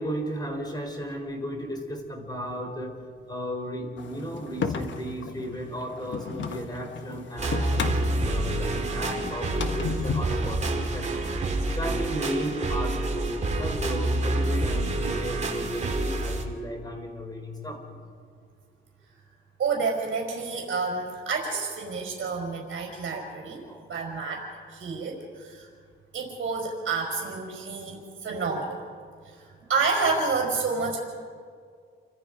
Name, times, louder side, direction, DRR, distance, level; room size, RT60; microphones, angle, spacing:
voice 1, 0.0-3.0 3.3-7.8 8.2-11.3 11.8-17.8 23.7-23.8, equal, 20° left, 2 dB, 4.1 m, -34 dB
sound 1, 4.0-10.4, left 5 dB, 65° left, 1.4 m, -34 dB
sound 2, 7.4-16.4, right 2 dB, 35° right, 2.6 m, -28 dB
voice 2, 19.6-23.6 23.9-24.4 24.7-25.7 26.1-28.8 29.3-29.4 29.7-31.0, right 4 dB, 65° right, -1 dB, 5.0 m, -29 dB
28.5 x 25.0 x 5.2 m, 2.1 s
wide cardioid pair, 160°, 21 cm